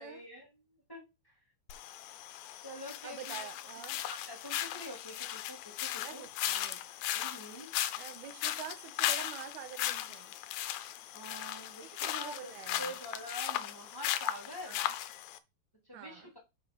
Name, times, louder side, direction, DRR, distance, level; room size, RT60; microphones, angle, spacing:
voice 1, 0.0-1.4 2.6-3.5 4.0-6.2 7.1-7.7 11.1-12.5 12.8-14.8 15.8-16.4, equal, 5° left, 2.2 m, -46 dB
sound 1, 1.7-15.4, left 13 dB, 80° left, 2.2 m, -37 dB
voice 2, 3.0-4.0 6.0-6.8 8.0-10.3 11.9-13.0 14.6-14.9 15.9-16.3, right 9 dB, 80° right, 2.8 m, -47 dB
6.1 x 5.7 x 5.5 m
omnidirectional pair, 4.7 m